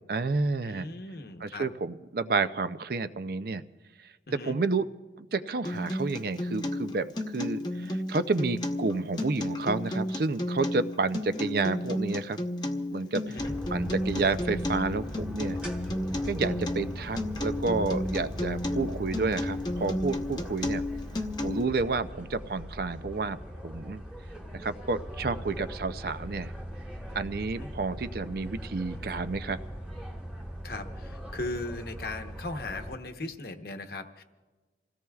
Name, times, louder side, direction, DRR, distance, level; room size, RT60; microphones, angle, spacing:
voice 1, 0.0-0.9 1.4-3.6 4.3-4.9 5.2-12.4 12.9-13.4 13.7-15.6 16.2-20.8 21.4-24.0 24.5-26.5 27.1-29.6, right 3 dB, 55° right, 12 dB, 0.5 m, -30 dB
voice 2, 0.6-1.7 4.3-4.6 13.3-13.5 27.5-27.7 30.6-34.2, left 2 dB, 60° left, 6 dB, 1.0 m, -38 dB
Acoustic guitar, 5.6-21.6, left 1 dB, 25° left, 0.8 m, -32 dB
sound 1, 13.4-33.0, equal, 5° right, 1.5 m, -39 dB
28.0 x 17.0 x 2.4 m, 1.3 s
head